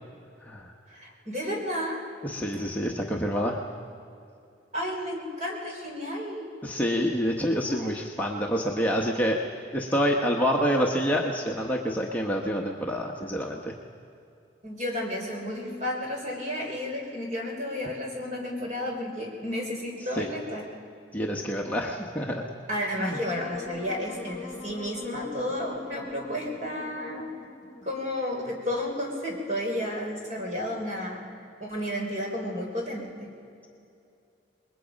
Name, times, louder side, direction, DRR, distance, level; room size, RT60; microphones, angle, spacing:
voice 1, 0.9-2.0 4.7-6.5 7.5-8.0 14.6-20.6 22.7-27.3 27.8-31.2 31.6-33.3, left 1 dB, 40° right, 0 dB, 3.7 m, -32 dB
voice 2, 2.2-3.6 6.6-9.4 9.7-13.7 20.2-20.3 21.1-22.4 23.0-23.2, equal, 10° left, -1 dB, 1.1 m, -27 dB
Wind instrument woodwind instrument, 23.1-28.2, left 4 dB, 40° left, 1.3 m, -42 dB
27.5 x 21.0 x 5.2 m, 2.6 s
head